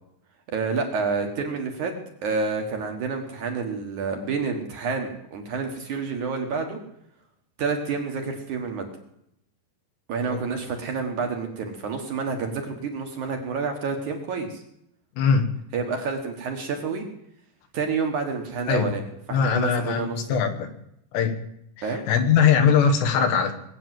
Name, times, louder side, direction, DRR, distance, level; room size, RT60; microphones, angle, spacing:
voice 1, 0.5-1.9 2.2-6.8 7.6-8.9 10.1-14.6 15.7-17.0 17.7-19.0 19.3-20.4 21.8-22.0, right 5 dB, 55° right, 4 dB, 2.4 m, -29 dB
voice 2, 10.3-10.6 15.2-15.5 18.7-18.9 19.3-20.7 21.1-21.4 21.8-23.5, left 6 dB, 75° left, 7 dB, 3.4 m, -21 dB
21.0 x 8.8 x 7.7 m, 0.77 s
omnidirectional pair, 5.0 m